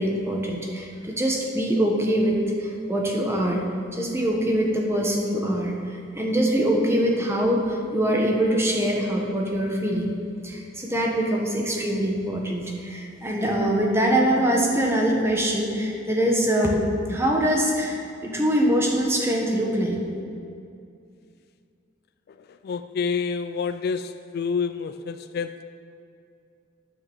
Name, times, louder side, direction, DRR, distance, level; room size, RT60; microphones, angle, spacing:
voice 1, 0.0-3.6 3.9-10.1 10.4-20.0, right 1 dB, 15° right, 0 dB, 1.3 m, -23 dB
voice 2, 22.5-25.6, left 5 dB, 50° left, 10 dB, 0.3 m, -28 dB
9.7 x 6.7 x 7.3 m, 2.4 s
head